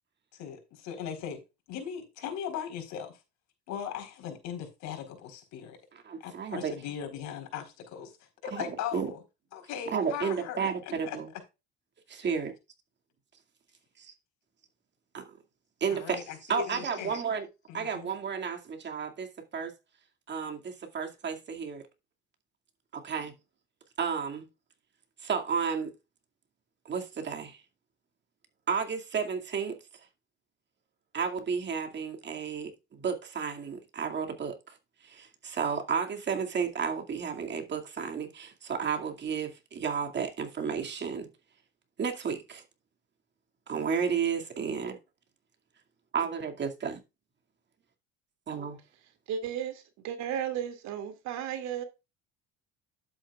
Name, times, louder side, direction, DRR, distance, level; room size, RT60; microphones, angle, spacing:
voice 1, 0.3-1.4 1.7-3.2 3.7-5.8 6.2-8.1 8.4-9.2 9.5-11.2 12.2-12.3 15.9-17.2 17.7-18.1, left 9 dB, 70° left, 4.2 m, -39 dB
voice 2, 5.9-6.7 8.5-8.6 8.9-9.1 9.9-11.3 12.1-12.5 14.0-14.1 15.1-15.2 15.8-17.5 17.7-19.3 19.5-19.7 20.3-21.8 22.9-23.3 24.0-24.5 25.2-25.9 26.9-27.6 28.7-29.8 31.1-34.7 35.0-41.3 42.0-42.6 43.7-45.0 46.1-47.0 48.5-48.8, right 6 dB, 35° right, 2.3 m, -32 dB
voice 3, 49.3-51.8, right 9 dB, 65° right, 2.5 m, -34 dB
11.5 x 8.6 x 2.4 m
cardioid pair, 110°, 30 cm